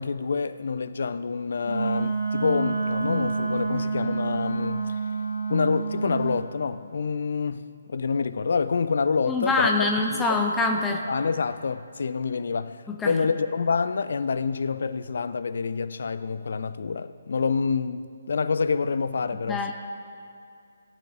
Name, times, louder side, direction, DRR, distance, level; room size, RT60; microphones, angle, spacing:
voice 1, 0.0-4.9 5.5-10.4 10.9-19.7, left 5 dB, 55° left, 0.4 m, -27 dB
Wind instrument woodwind instrument, 1.6-6.4, right 4 dB, 80° right, 3.1 m, -28 dB
voice 2, 9.3-11.0 12.9-13.1 19.5-19.7, left 3 dB, 10° left, 0.8 m, -24 dB
18.0 x 9.7 x 2.7 m
figure-of-eight pair, 140°, 0 cm